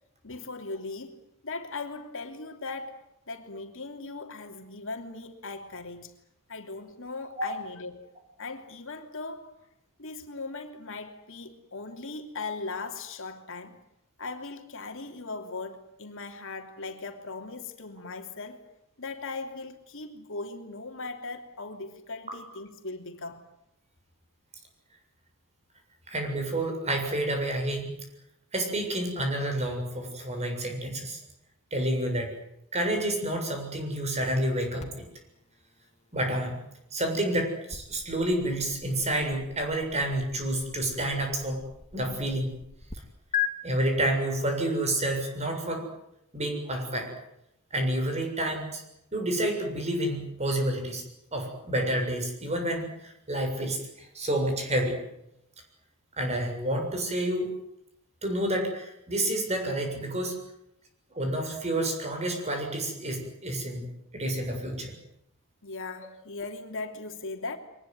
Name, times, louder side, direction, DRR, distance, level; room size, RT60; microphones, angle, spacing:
voice 1, 0.2-3.0 3.3-6.1 6.5-8.1 8.4-9.5 10.0-13.8 14.2-18.6 19.0-23.4 65.6-67.6, left 3 dB, 65° left, 3.0 m, -39 dB
voice 2, 26.1-27.9 28.5-31.2 31.7-32.3 32.7-35.0 36.1-36.6 36.9-41.6 41.9-42.6 43.6-45.8 46.3-47.1 47.7-48.8 49.1-51.0 51.3-55.0 56.2-57.5 58.2-60.4 61.1-64.9, right 1 dB, 30° right, 7.1 m, -29 dB
sound 1, 34.8-43.0 43.3-43.5, left 9 dB, 30° left, 2.4 m, -39 dB
23.5 x 20.5 x 9.6 m
head